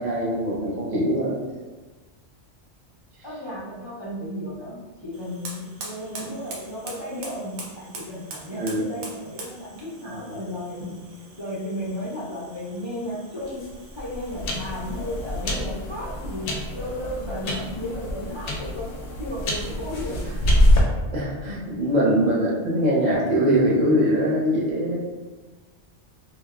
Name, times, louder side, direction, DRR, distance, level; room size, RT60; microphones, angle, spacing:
voice 1, 0.0-1.4 8.5-8.9 10.0-10.4 21.1-25.0, equal, 45° right, -5 dB, 0.7 m, -22 dB
voice 2, 3.2-10.9 11.4-13.6 13.9-16.5 16.7-18.9 19.2-20.3, left 1 dB, 45° left, -8 dB, 0.3 m, -34 dB
Fire, 5.1-15.7, right 3 dB, 85° right, 0.9 m, -43 dB
sound 1, 13.4-20.8, left 1 dB, 75° left, 0.9 m, -25 dB
2.9 x 2.0 x 2.3 m, 1.3 s
omnidirectional pair, 1.2 m